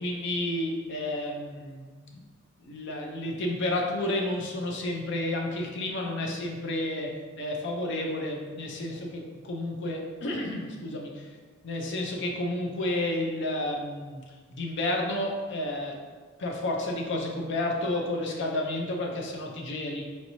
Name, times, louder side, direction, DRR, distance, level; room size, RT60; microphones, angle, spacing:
voice 1, 0.0-2.2 2.6-7.1 7.4-11.1 11.6-14.2 14.5-16.0 16.4-20.0, left 1 dB, 60° left, 0 dB, 0.6 m, -31 dB
4.4 x 3.0 x 2.7 m, 1.4 s
head